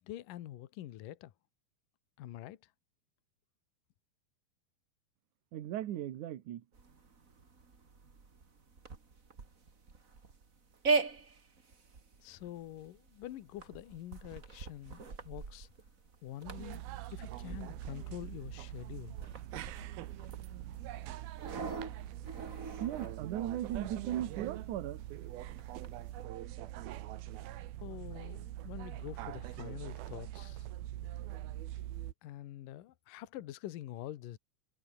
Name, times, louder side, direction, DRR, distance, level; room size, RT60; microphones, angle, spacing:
voice 1, 0.0-1.3 2.2-2.6 12.2-15.7 16.2-16.8 17.1-19.2 27.8-30.7 31.0-31.4 32.2-34.4, left 13 dB, 70° left, 2.8 m, -46 dB
voice 2, 5.5-6.6 22.8-25.0, right 12 dB, 60° right, 2.6 m, -37 dB
sound 1, 6.7-26.2, right 4 dB, 25° right, 2.1 m, -41 dB
sound 2, 16.5-32.1, right 14 dB, 85° right, 3.1 m, -43 dB
omnidirectional pair, 4.3 m